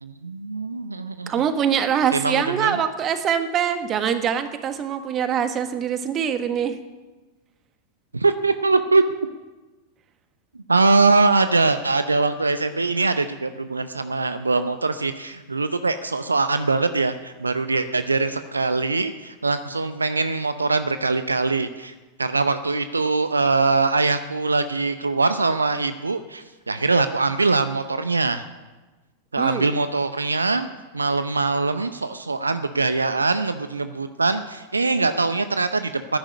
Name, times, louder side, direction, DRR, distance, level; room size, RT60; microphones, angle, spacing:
voice 1, 0.0-1.3 2.1-2.8 8.1-9.0 10.7-21.9 22.2-28.4 29.3-30.7 30.9-36.2, right 3 dB, 80° right, 11 dB, 0.7 m, -22 dB
voice 2, 1.3-6.8 29.4-29.7, right 8 dB, 30° right, 9 dB, 1.6 m, -23 dB
14.0 x 10.5 x 9.4 m, 1.2 s
figure-of-eight pair, 90°, 0 cm